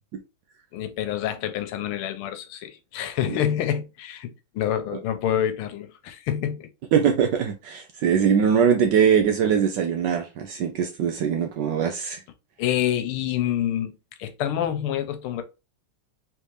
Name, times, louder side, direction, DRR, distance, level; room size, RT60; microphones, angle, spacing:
voice 1, 0.7-6.7 12.6-13.9 14.2-15.4, left 10 dB, 85° left, 1.6 m, -27 dB
voice 2, 6.9-12.2, right 7 dB, 70° right, 1.0 m, -22 dB
4.0 x 3.5 x 3.2 m
omnidirectional pair, 2.4 m